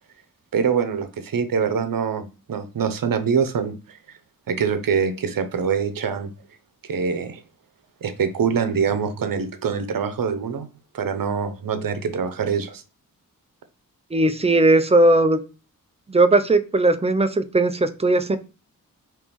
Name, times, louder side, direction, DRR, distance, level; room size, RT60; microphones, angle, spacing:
voice 1, 0.5-4.2 4.5-6.3 6.8-7.4 8.0-10.7 10.9-12.8, right 6 dB, 75° right, 9 dB, 0.8 m, -24 dB
voice 2, 14.1-15.4 16.1-18.4, right 2 dB, 20° right, 9 dB, 0.5 m, -18 dB
4.6 x 3.2 x 3.5 m, 0.32 s
wide cardioid pair, 110°, 34 cm